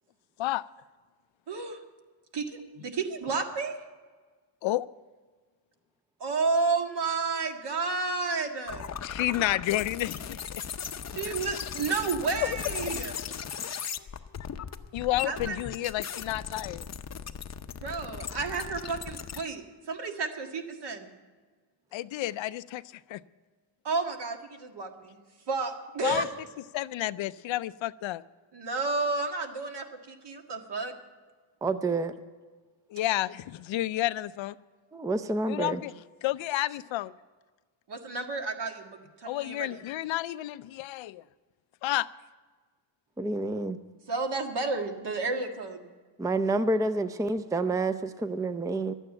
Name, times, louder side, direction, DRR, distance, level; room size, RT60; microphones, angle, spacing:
voice 1, 1.5-1.8 2.3-3.8 6.2-8.9 11.1-13.2 15.2-15.6 17.7-21.1 23.8-25.2 25.5-26.3 28.5-30.9 37.9-39.8 44.1-45.9, right 4 dB, 60° right, 4 dB, 1.8 m, -31 dB
sound 1, 8.7-19.4, left 7 dB, 35° left, 0.6 m, -38 dB
voice 2, 9.0-10.6 12.4-12.6 12.9-13.1 14.9-16.9 21.9-22.8 23.1-23.2 26.0-26.3 26.7-28.2 32.9-34.5 35.5-35.9 36.2-37.1 39.2-41.2 41.8-42.1, left 15 dB, 80° left, 16 dB, 0.5 m, -30 dB
voice 3, 31.6-32.1 34.9-35.8 43.2-43.8 46.2-48.9, right 2 dB, 5° right, 11 dB, 0.5 m, -28 dB
12.5 x 9.2 x 8.9 m, 1.4 s
cardioid pair, 90°, 46 cm